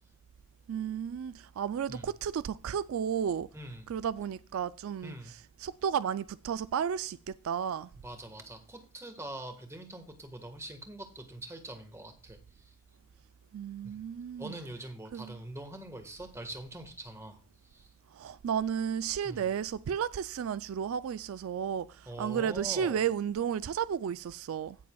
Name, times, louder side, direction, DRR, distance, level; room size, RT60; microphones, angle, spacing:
voice 1, 0.7-3.5 3.9-7.9 13.5-14.6 15.1-15.4 18.1-24.8, right 8 dB, 65° right, 0.3 m, -33 dB
voice 2, 3.5-3.9 5.0-5.3 8.0-12.7 13.8-14.0 14.4-17.4 17.6-17.9 19.2-19.4 22.1-23.0, right 1 dB, 15° right, 1.4 m, -44 dB
16.5 x 6.8 x 2.3 m
head